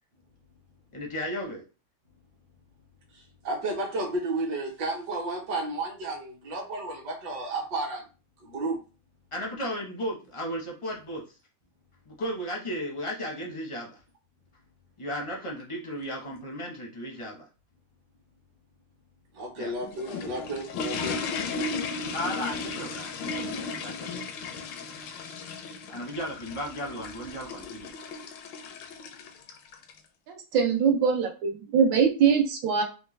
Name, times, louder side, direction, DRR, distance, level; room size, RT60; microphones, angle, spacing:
voice 1, 0.9-1.6 9.3-11.3 12.1-14.0 15.0-17.5 19.6-19.7 22.1-24.3 24.7-24.8 25.9-27.9, equal, 35° left, -1 dB, 0.5 m, -35 dB
voice 2, 3.1-8.0 8.4-8.8 19.3-21.2, right 2 dB, 65° right, -2 dB, 1.7 m, -32 dB
sound 1, 19.7-30.0, left 4 dB, 85° left, 1.3 m, -35 dB
voice 3, 30.5-32.8, right 6 dB, 85° right, 3 dB, 1.6 m, -22 dB
4.3 x 2.2 x 3.2 m, 0.32 s
omnidirectional pair, 2.0 m